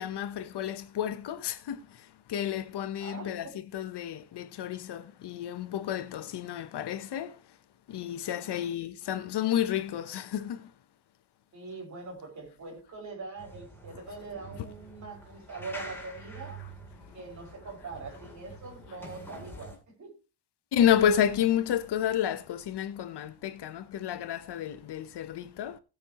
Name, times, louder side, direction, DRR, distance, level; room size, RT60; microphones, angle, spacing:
voice 1, 0.0-7.4 7.9-10.7 13.9-14.0 14.6-14.7 16.6-16.7 17.8-17.9 18.9-19.0 20.7-25.8, left 10 dB, 60° left, 1.0 m, -30 dB
voice 2, 3.0-3.6 8.5-8.6 11.5-16.6 17.1-20.1, right 3 dB, 40° right, 5.8 m, -43 dB
sound 1, 13.4-19.8, right 2 dB, 5° left, 3.0 m, -46 dB
18.5 x 7.0 x 3.0 m
cardioid pair, 180°, 47 cm